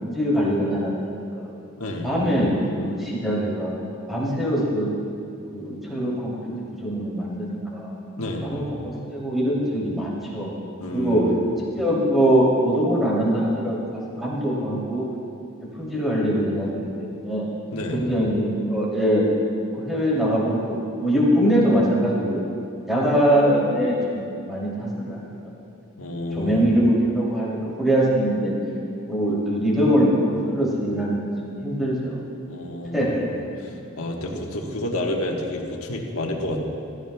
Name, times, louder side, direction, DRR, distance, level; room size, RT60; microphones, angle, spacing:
voice 1, 0.0-1.5 2.0-3.7 4.1-4.9 5.5-6.3 6.8-7.9 8.4-10.5 10.9-11.2 11.8-15.1 15.8-17.5 17.9-19.2 19.7-22.5 22.9-25.4 26.3-28.5 29.1-30.1 30.5-31.2 31.6-32.2 32.9-33.2 34.1-34.4, equal, ahead, -7 dB, 2.9 m, -22 dB
voice 2, 1.8-2.1 8.1-8.5 10.8-11.3 17.7-18.0 26.0-26.7 32.5-33.2 34.0-36.6, left 1 dB, 85° left, 0 dB, 1.3 m, -29 dB
16.0 x 14.5 x 2.3 m, 2.6 s
head